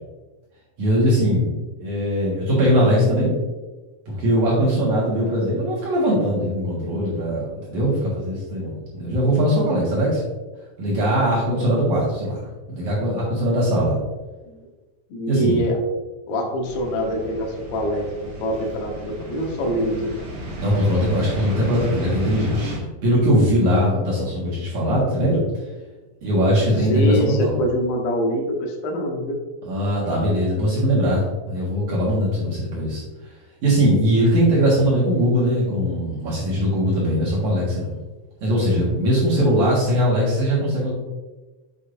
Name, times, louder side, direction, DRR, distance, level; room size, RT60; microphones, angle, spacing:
voice 1, 0.8-1.5 1.8-3.3 4.1-10.2 10.8-12.5 12.7-14.0 15.3-15.7 20.6-25.4 26.2-27.6 29.6-33.0 33.6-38.0 38.4-40.9, equal, 65° right, -7 dB, 1.8 m, -20 dB
voice 2, 15.1-15.8 16.3-20.2 26.8-29.4 39.4-39.7, equal, 85° left, 0 dB, 2.1 m, -25 dB
sound 1, 16.6-22.8, equal, 45° right, 2.1 m, -32 dB
7.7 x 6.5 x 2.6 m, 1.2 s
omnidirectional pair, 5.9 m